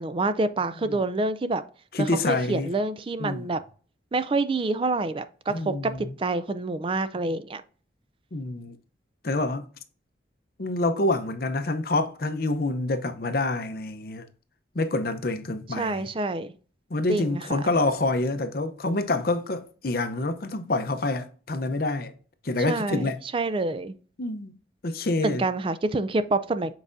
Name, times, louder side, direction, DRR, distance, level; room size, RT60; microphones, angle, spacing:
voice 1, 0.0-1.6 2.0-3.6 4.1-7.6 15.8-16.5 17.1-17.7 22.7-23.9 25.2-26.7, right 3 dB, 30° right, 0.4 m, -27 dB
voice 2, 1.9-2.7 3.2-3.5 5.5-6.1 8.3-8.8 9.2-9.6 10.6-14.3 14.7-16.1 16.9-22.1 22.4-23.2 24.2-24.5 24.8-25.4, left 2 dB, 55° left, 0.7 m, -27 dB
7.6 x 4.7 x 2.6 m
head